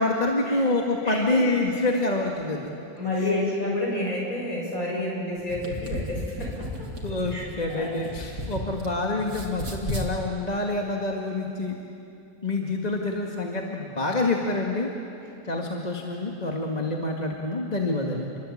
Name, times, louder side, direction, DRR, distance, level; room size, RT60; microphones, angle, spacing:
voice 1, 0.0-2.7 3.1-3.3 7.0-11.7 12.4-14.9 15.4-18.4, left 2 dB, 20° left, 0 dB, 1.9 m, -27 dB
voice 2, 1.0-1.4 3.0-6.9 7.3-7.4 7.7-8.1, left 1 dB, 45° left, -2 dB, 7.2 m, -29 dB
sound 1, 5.4-8.9 9.2-10.1, equal, 65° right, 3.9 m, -33 dB
29.0 x 23.0 x 8.6 m, 2.7 s
omnidirectional pair, 2.0 m